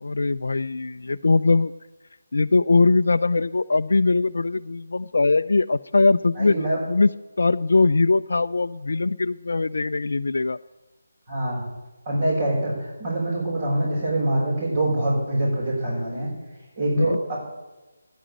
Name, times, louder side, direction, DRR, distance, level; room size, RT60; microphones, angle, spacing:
voice 1, 0.0-1.7 2.3-6.6 6.9-7.1 7.4-10.6 17.0-17.2, left 3 dB, 65° left, 9 dB, 0.4 m, -21 dB
voice 2, 6.4-6.8 11.3-11.6 12.1-16.3 16.8-17.4, right 1 dB, 35° right, -5 dB, 5.9 m, -24 dB
14.0 x 10.5 x 8.8 m, 1.1 s
figure-of-eight pair, 155°, 0 cm